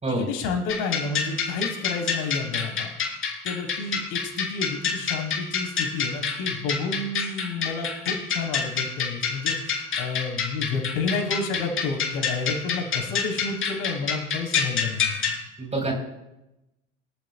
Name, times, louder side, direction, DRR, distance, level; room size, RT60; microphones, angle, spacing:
voice 1, 0.1-2.9 3.4-9.6 10.0-15.3, left 4 dB, 55° left, 1 dB, 4.0 m, -30 dB
sound 1, 0.7-15.4, left 6 dB, 30° left, 3.8 m, -28 dB
voice 2, 15.6-15.9, right 2 dB, 15° right, 1 dB, 4.6 m, -26 dB
24.0 x 14.0 x 2.4 m, 0.93 s
figure-of-eight pair, 75°, 38 cm